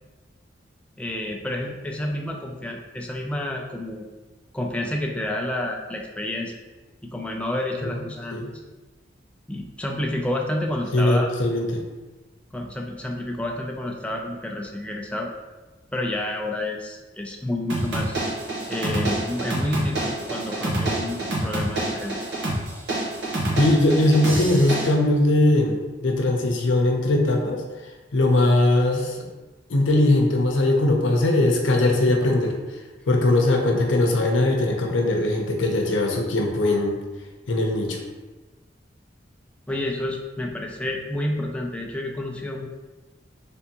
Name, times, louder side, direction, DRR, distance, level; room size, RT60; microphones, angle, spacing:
voice 1, 1.0-4.0 4.5-6.5 7.0-8.4 9.5-11.3 12.5-15.3 15.9-18.2 18.7-22.2 39.7-42.7, left 1 dB, 5° left, 0 dB, 0.3 m, -29 dB
voice 2, 10.9-11.8 23.6-27.6 28.1-29.3 29.7-32.6 33.1-37.0 37.5-38.0, left 1 dB, 90° left, 2 dB, 0.6 m, -20 dB
sound 1, 17.7-24.9, right 1 dB, 70° right, 1.0 m, -27 dB
3.4 x 3.4 x 2.9 m, 1.2 s
head